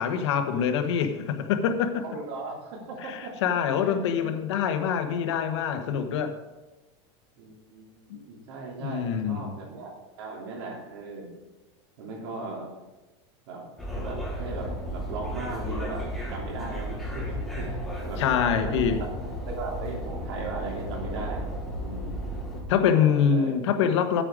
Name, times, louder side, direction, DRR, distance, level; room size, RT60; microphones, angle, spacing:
voice 1, 0.0-2.0 3.0-6.4 8.1-8.2 8.8-9.6 18.2-19.0 22.7-24.2, left 7 dB, 80° left, 7 dB, 1.2 m, -25 dB
voice 2, 2.0-3.3 3.8-4.3 7.4-11.3 12.0-12.7 13.5-13.7 13.9-18.9 19.4-21.5 21.8-22.2 22.8-23.5, right 3 dB, 60° right, -1 dB, 3.2 m, -38 dB
sound 1, 13.8-22.6, equal, ahead, 1.3 m, -34 dB
8.7 x 8.7 x 5.0 m, 1.1 s
supercardioid pair, 180°, 15 cm